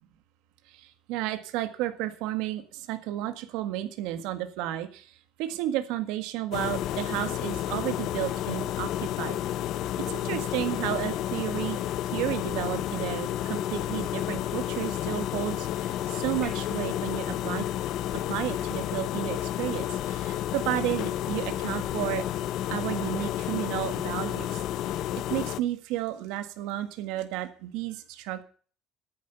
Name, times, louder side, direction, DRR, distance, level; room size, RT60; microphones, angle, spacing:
voice 1, 0.7-5.1 5.4-9.4 10.1-11.8 12.1-17.7 18.3-22.2 22.7-24.6 25.3-28.4, right 13 dB, 85° right, 9 dB, 1.7 m, -32 dB
sound 1, 6.5-25.6, left 12 dB, 55° left, 0.6 m, -31 dB
sound 2, 16.4-19.1 23.2-23.3, equal, ahead, 4.0 m, -53 dB
10.0 x 9.6 x 6.9 m, 0.41 s
cardioid pair, 160°, 0 cm